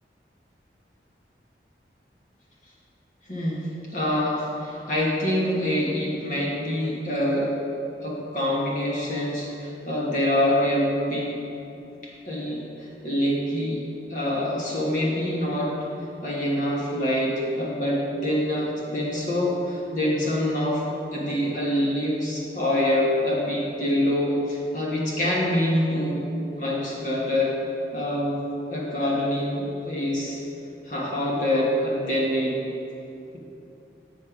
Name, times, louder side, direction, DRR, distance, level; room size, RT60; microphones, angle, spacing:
voice 1, 3.3-3.7 3.9-7.6 8.0-11.3 12.3-13.8 14.1-15.7 16.2-26.2 26.5-27.5 27.9-28.4 28.7-30.4 30.8-32.5, left 1 dB, 45° left, -5 dB, 1.4 m, -25 dB
7.9 x 4.3 x 5.9 m, 2.7 s
head